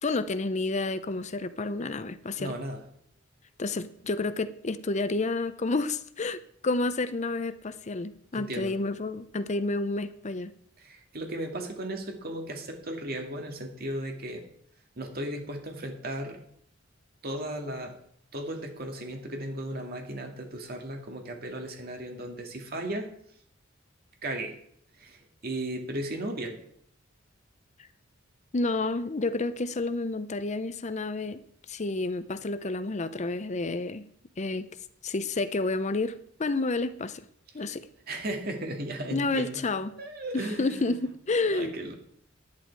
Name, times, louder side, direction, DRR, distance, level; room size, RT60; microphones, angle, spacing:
voice 1, 0.0-2.5 3.6-10.5 28.5-31.4 31.7-34.1 34.4-34.7 35.0-37.3 37.5-37.9 39.1-39.9 40.3-41.8, left 3 dB, 35° left, 13 dB, 0.6 m, -30 dB
voice 2, 2.4-2.8 8.3-8.7 10.8-14.4 15.0-16.4 17.2-17.9 18.3-23.1 24.2-24.5 25.0-26.6 38.1-39.6 40.0-40.9 41.5-41.9, right 1 dB, 50° right, 3 dB, 2.1 m, -35 dB
11.0 x 10.5 x 4.7 m, 0.64 s
head